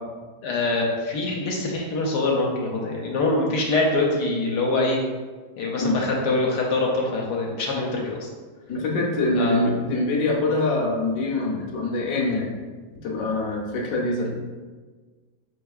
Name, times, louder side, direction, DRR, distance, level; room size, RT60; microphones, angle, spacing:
voice 1, 0.4-5.0 5.6-8.3 9.3-9.6, left 2 dB, 80° left, -2 dB, 1.2 m, -24 dB
voice 2, 8.7-12.5 13.0-14.3, left 2 dB, 60° left, -2 dB, 1.1 m, -24 dB
4.4 x 3.4 x 2.3 m, 1.4 s
omnidirectional pair, 1.8 m